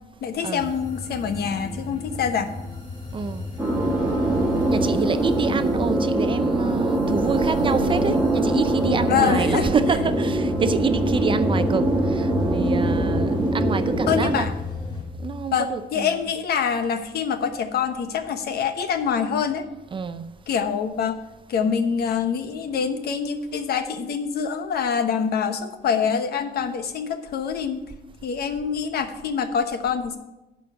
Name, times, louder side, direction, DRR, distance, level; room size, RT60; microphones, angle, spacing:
voice 1, 0.2-2.5 8.9-9.7 14.1-14.5 15.5-19.6 20.5-21.2 21.5-27.8 28.2-30.2, left 7 dB, 65° left, 1.1 m, -25 dB
sound 1, 0.6-15.0, left 2 dB, 25° left, 3.3 m, -32 dB
voice 2, 3.1-3.5 4.7-14.5 15.2-16.2 19.9-20.2, right 5 dB, 30° right, 0.5 m, -27 dB
sound 2, 3.6-14.4, right 1 dB, 10° right, 1.6 m, -23 dB
11.0 x 5.2 x 7.0 m
cardioid pair, 140°, 18 cm